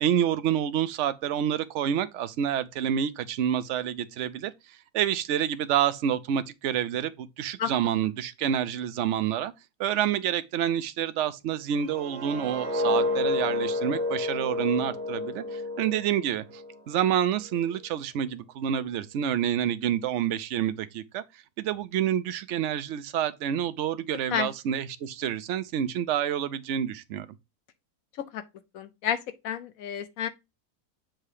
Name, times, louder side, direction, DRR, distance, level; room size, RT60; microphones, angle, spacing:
voice 1, 0.0-4.5 4.9-9.5 9.8-16.6 16.9-21.2 21.6-27.3, right 9 dB, 65° right, 0.8 m, -28 dB
sound 1, 11.7-16.8 17.1-17.5, left 2 dB, 25° right, 0.9 m, -30 dB
voice 2, 28.7-29.2 29.4-30.3, left 9 dB, 70° left, 1.0 m, -30 dB
7.5 x 2.8 x 4.8 m
omnidirectional pair, 1.6 m